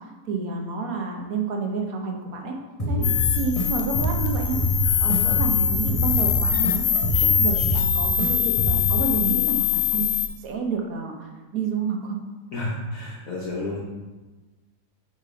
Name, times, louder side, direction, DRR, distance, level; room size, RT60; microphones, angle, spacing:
voice 1, 0.0-2.6 2.9-3.0 3.3-4.6 5.0-6.9 7.2-10.1 10.4-12.2, right 4 dB, 60° right, 1 dB, 1.2 m, -29 dB
sound 1, 2.8-3.6 3.9-6.7 7.0-8.3 8.6-9.0, right 1 dB, 25° left, 0.9 m, -25 dB
sound 2, 3.0-10.3, left 9 dB, 85° left, 1.2 m, -23 dB
voice 2, 12.5-13.8, left 2 dB, 60° left, -6 dB, 1.3 m, -31 dB
5.3 x 4.1 x 5.0 m, 1.2 s
omnidirectional pair, 1.8 m